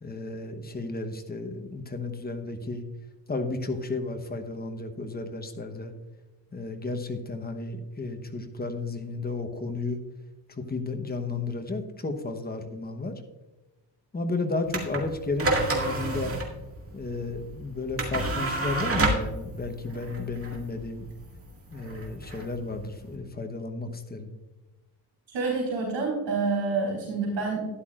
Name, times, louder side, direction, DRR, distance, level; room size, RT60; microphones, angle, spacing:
voice 1, 0.0-2.8 3.3-5.9 6.5-10.0 10.5-13.1 14.1-16.3 16.9-21.0 21.7-24.3, left 3 dB, 20° left, 6 dB, 1.0 m, -33 dB
sound 1, 14.7-23.2, right 2 dB, 30° right, 2.0 m, -30 dB
voice 2, 25.3-27.7, right 4 dB, 85° right, -5 dB, 3.8 m, -28 dB
13.0 x 10.5 x 2.5 m, 1.1 s
cardioid pair, 125°, 44 cm